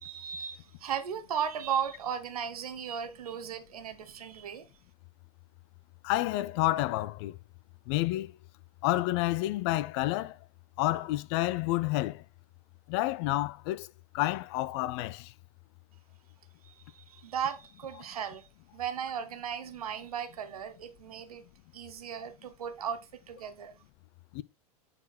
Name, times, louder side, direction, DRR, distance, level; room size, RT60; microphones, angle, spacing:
voice 1, 0.0-4.7 16.6-18.5 18.7-21.4 21.7-23.8, right 8 dB, 70° right, 1.0 m, -36 dB
voice 2, 6.0-7.4 7.9-8.3 8.8-10.4 10.8-12.2 12.9-13.9 14.1-15.3 24.3-24.4, left 17 dB, 45° left, 0.5 m, -29 dB
7.3 x 4.2 x 4.1 m
figure-of-eight pair, 90°, 20 cm